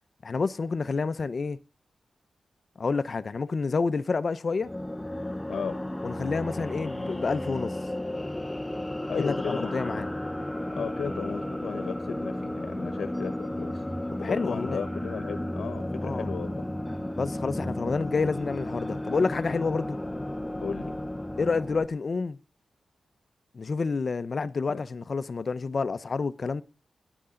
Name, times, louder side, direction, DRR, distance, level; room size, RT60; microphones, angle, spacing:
voice 1, 0.2-1.6 2.8-4.7 6.0-7.8 9.2-10.1 14.2-14.8 16.0-16.3 17.2-20.0 21.4-22.4 23.5-26.6, left 4 dB, 40° left, 0.8 m, -29 dB
sound 1, 4.6-21.9, left 1 dB, 10° left, 0.7 m, -33 dB
voice 2, 5.5-5.8 9.1-10.0 10.7-13.8 14.2-16.6 20.6-20.9 24.7-24.8, left 6 dB, 75° left, 1.1 m, -35 dB
17.0 x 11.0 x 3.9 m
wide cardioid pair, 135°, 0 cm